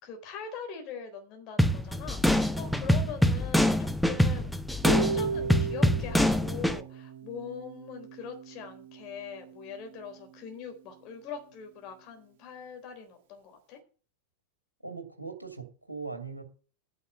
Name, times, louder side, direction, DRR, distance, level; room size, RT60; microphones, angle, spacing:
voice 1, 0.0-4.6 5.0-13.8, left 6 dB, 40° left, 5 dB, 3.8 m, -42 dB
sound 1, 1.6-6.8, equal, ahead, 0.8 m, -25 dB
Harp, 4.8-10.9, right 5 dB, 50° right, 2.5 m, -37 dB
voice 2, 14.8-16.4, right 4 dB, 85° right, 5 dB, 2.6 m, -40 dB
9.7 x 6.3 x 7.9 m, 0.38 s
figure-of-eight pair, 90°, 0 cm